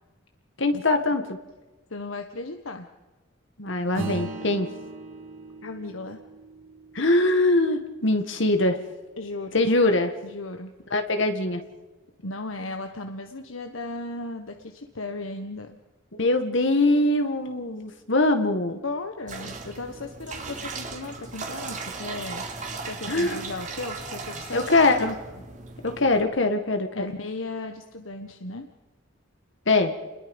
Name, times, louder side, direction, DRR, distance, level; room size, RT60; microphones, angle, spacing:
voice 1, 0.6-1.4 3.6-4.7 7.0-8.8 9.5-10.1 10.9-11.6 16.1-18.8 23.1-23.4 24.5-25.2 25.8-27.0 29.7-29.9, left 2 dB, 65° left, 6 dB, 1.8 m, -22 dB
voice 2, 1.9-2.9 5.6-6.2 9.2-9.6 10.2-10.7 12.2-15.8 18.8-22.4 22.8-25.0 26.9-28.7, left 2 dB, 80° left, 5 dB, 1.5 m, -36 dB
Acoustic guitar / Strum, 3.9-8.7, right 2 dB, 85° right, 6.4 m, -39 dB
sound 1, 19.3-26.2, right 4 dB, 40° right, 2.8 m, -37 dB
30.0 x 21.5 x 5.4 m, 1.2 s
head